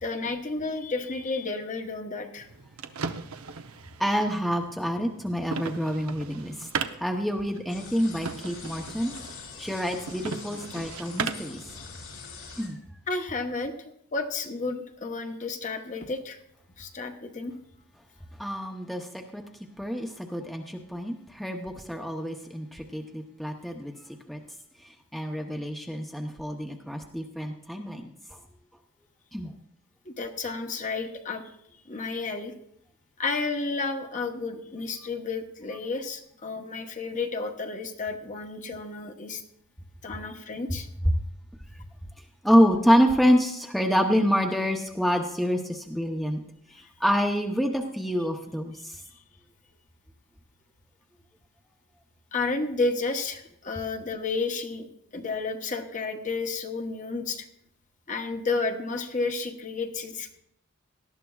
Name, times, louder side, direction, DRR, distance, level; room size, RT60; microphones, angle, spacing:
voice 1, 0.0-2.5 7.0-7.1 13.1-13.7 14.1-16.4 16.8-17.5 30.0-31.4 31.7-32.5 33.2-39.4 40.0-40.9 46.8-46.9 52.3-54.9 55.1-57.5 58.1-60.4, left 3 dB, 35° left, 5 dB, 1.0 m, -31 dB
Dresser Drawer, 2.4-11.6, right 5 dB, 90° right, 0.7 m, -37 dB
voice 2, 4.0-6.7 7.0-9.1 9.6-11.6 12.6-12.8 18.4-19.4 19.8-23.9 24.3-24.4 25.1-28.1 29.3-29.5 42.4-46.4 47.0-48.9, equal, ahead, 2 dB, 0.7 m, -27 dB
sound 1, 7.7-12.7, left 5 dB, 65° left, 4.3 m, -44 dB
18.0 x 12.5 x 2.4 m, 0.74 s
head